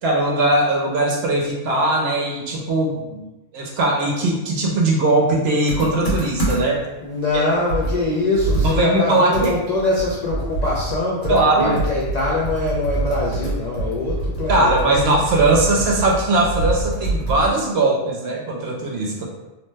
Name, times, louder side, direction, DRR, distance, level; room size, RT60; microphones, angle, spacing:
voice 1, 0.0-3.2 3.5-6.8 8.8-9.5 11.3-11.8 14.5-19.2, right 2 dB, 65° right, -1 dB, 0.8 m, -19 dB
Computer keyboard, 5.7-6.9 7.3-7.4 7.7-17.6, right 1 dB, 75° left, 1.3 m, -25 dB
voice 2, 7.0-14.8, left 2 dB, 60° left, -6 dB, 0.4 m, -23 dB
2.8 x 2.1 x 3.2 m, 1.0 s
omnidirectional pair, 1.3 m